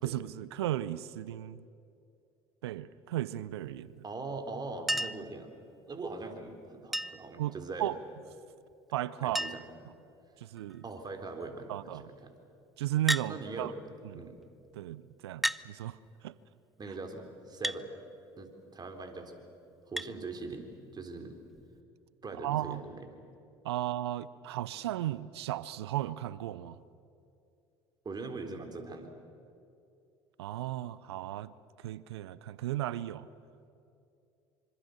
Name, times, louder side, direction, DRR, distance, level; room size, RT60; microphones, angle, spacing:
voice 1, 0.0-1.7 2.6-3.9 7.4-7.5 7.8-7.9 8.9-9.4 10.4-10.8 11.7-12.1 12.8-13.7 14.1-14.2 14.8-16.0 16.2-16.3 22.4-22.8 23.6-26.8 30.4-31.5 31.8-33.3, right 14 dB, 80° right, 0.6 m, -35 dB
voice 2, 4.0-5.5 5.9-7.9 9.2-9.6 10.8-12.3 13.2-13.7 14.1-14.4 16.8-17.9 18.4-19.4 19.9-21.4 22.2-23.1 28.0-29.1, right 3 dB, 30° right, 3.8 m, -41 dB
Chink clink, 4.9-5.3 6.9-7.3 8.7-8.8 9.0-9.1 9.4-9.8 10.6-10.9 13.1-13.3 14.4-14.5 15.4-15.7 17.6-17.8 20.0-20.1 21.6-21.7, equal, ahead, 0.5 m, -33 dB
25.5 x 25.0 x 6.6 m
hypercardioid pair, 65°, 13 cm